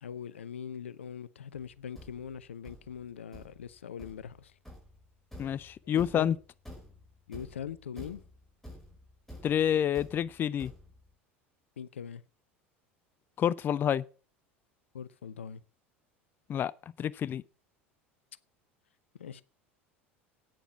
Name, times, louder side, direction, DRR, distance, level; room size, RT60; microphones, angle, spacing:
voice 1, 0.0-4.5 5.9-6.3 7.3-8.2 11.8-12.2 14.9-15.6 19.2-19.4, left 8 dB, 70° left, 0.6 m, -41 dB
Thump thud, 1.7-11.1, left 1 dB, 5° left, 4.9 m, -50 dB
voice 2, 5.4-6.4 9.4-10.7 13.4-14.0 16.5-16.7 17.0-17.4, left 9 dB, 30° left, 0.4 m, -28 dB
9.1 x 8.9 x 6.8 m
figure-of-eight pair, 70°, 7 cm